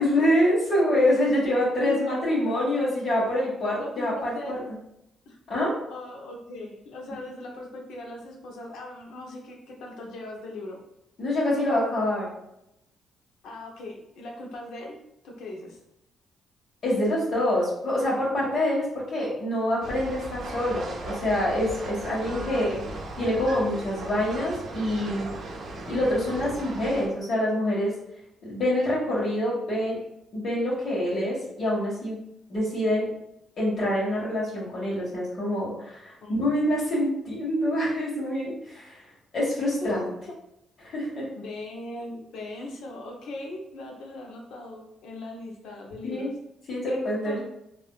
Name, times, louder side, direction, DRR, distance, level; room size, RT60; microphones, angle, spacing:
voice 1, 0.0-4.5 5.5-5.8 11.2-12.3 16.8-22.8 23.2-25.3 25.9-28.0 28.4-30.0 30.3-32.2 32.5-33.1 33.6-39.0 39.3-40.1 40.8-41.3 46.0-46.3 46.7-47.4, left 1 dB, 55° left, -7 dB, 1.4 m, -26 dB
voice 2, 1.5-2.8 3.8-4.7 5.3-5.4 5.9-10.8 13.4-15.0 15.2-15.8 22.1-22.9 36.2-36.4 39.8-40.1 41.3-46.3 46.9-47.4, left 2 dB, 80° left, 1 dB, 0.7 m, -39 dB
sound 1, 19.8-27.1, right 2 dB, 60° right, 0.6 m, -37 dB
3.4 x 2.5 x 2.3 m, 0.81 s
cardioid pair, 90°, 0 cm